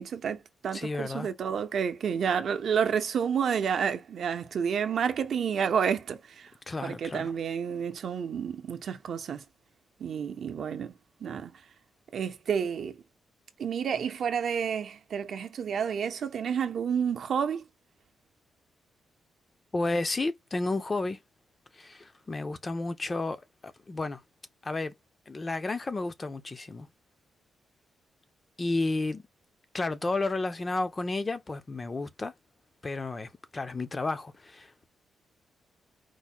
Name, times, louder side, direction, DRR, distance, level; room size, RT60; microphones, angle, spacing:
voice 1, 0.0-6.5 6.8-9.4 10.0-10.9 11.2-11.5 12.1-13.0 13.6-17.6, right 7 dB, 55° right, 0.7 m, -30 dB
voice 2, 0.7-1.3 6.7-7.3 19.7-21.2 21.7-24.2 24.6-24.9 25.3-26.9 28.6-29.2 29.7-32.3 32.8-34.9, left 2 dB, 20° left, 0.5 m, -32 dB
4.6 x 2.1 x 4.2 m
wide cardioid pair, 155°, 0 cm